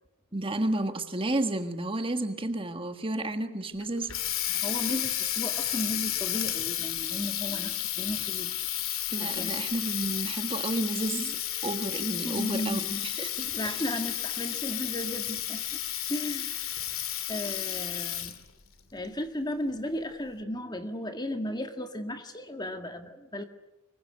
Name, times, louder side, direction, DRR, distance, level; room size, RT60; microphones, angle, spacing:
voice 1, 0.3-4.2 9.1-13.8, right 2 dB, 25° right, 8 dB, 1.5 m, -32 dB
Water tap faucet, 3.8-18.5, left 12 dB, 70° left, 2.4 m, -32 dB
voice 2, 4.5-8.5 9.2-9.6 12.2-13.1 13.5-15.8 16.1-18.4 18.9-23.5, left 1 dB, 20° left, 7 dB, 1.8 m, -35 dB
25.0 x 23.0 x 9.4 m, 0.95 s
head